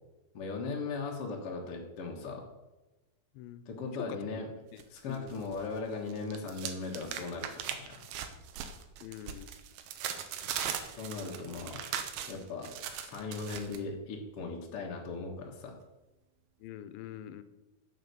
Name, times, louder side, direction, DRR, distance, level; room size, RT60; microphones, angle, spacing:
voice 1, 0.3-2.5 3.6-4.5 4.9-8.0 10.9-11.8 12.3-15.7, left 4 dB, 55° left, 0 dB, 1.8 m, -38 dB
voice 2, 4.7-5.4 9.0-9.5 16.6-17.4, left 11 dB, 85° left, 12 dB, 2.5 m, -45 dB
sound 1, 4.8-5.7 5.9-13.8, right 9 dB, 85° right, 2.7 m, -40 dB
11.0 x 6.7 x 6.8 m, 1.1 s
omnidirectional pair, 4.1 m